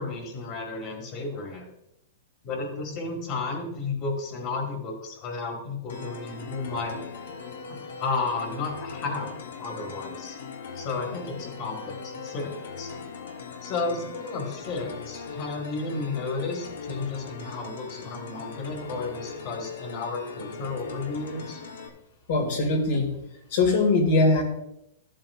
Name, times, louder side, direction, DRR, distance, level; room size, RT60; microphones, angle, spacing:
voice 1, 0.0-1.7 2.4-7.0 7.7-9.3 9.6-10.4 10.8-12.9 13.6-21.6, left 3 dB, 35° left, 2 dB, 2.0 m, -33 dB
sound 1, 5.9-21.9, left 5 dB, 85° left, 1.1 m, -40 dB
voice 2, 22.3-23.1 23.5-24.4, left 2 dB, 60° left, 3 dB, 2.3 m, -21 dB
13.5 x 7.5 x 2.5 m, 0.82 s
supercardioid pair, 155°, 0 cm